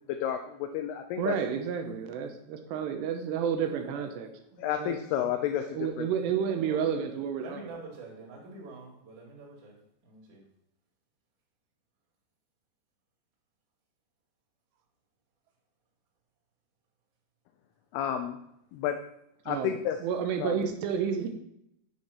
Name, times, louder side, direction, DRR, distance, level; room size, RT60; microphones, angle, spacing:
voice 1, 0.1-1.3 4.6-6.1 17.9-18.4 18.7-19.0 19.5-20.0 20.4-20.6, left 10 dB, 80° left, 5 dB, 2.5 m, -31 dB
voice 2, 1.2-4.3 4.6-4.9 5.7-7.7 19.5-19.7 20.0-21.3, right 7 dB, 85° right, 6 dB, 3.0 m, -30 dB
voice 3, 7.4-9.7 10.0-10.4, right 3 dB, 50° right, -5 dB, 3.7 m, -46 dB
9.7 x 6.3 x 4.4 m, 0.77 s
omnidirectional pair, 4.8 m